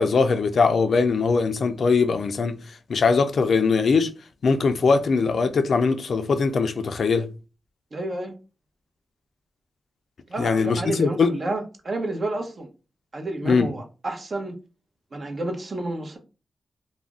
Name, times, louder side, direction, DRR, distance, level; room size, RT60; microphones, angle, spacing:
voice 1, 0.0-2.6 2.9-4.1 4.4-7.3 10.4-11.3 13.4-13.7, left 4 dB, 70° left, 0.3 m, -21 dB
voice 2, 7.9-8.3 10.3-12.7 13.1-14.6 15.1-16.2, right 2 dB, 50° right, 0.7 m, -30 dB
2.4 x 2.0 x 3.5 m
cardioid pair, 70°, 0 cm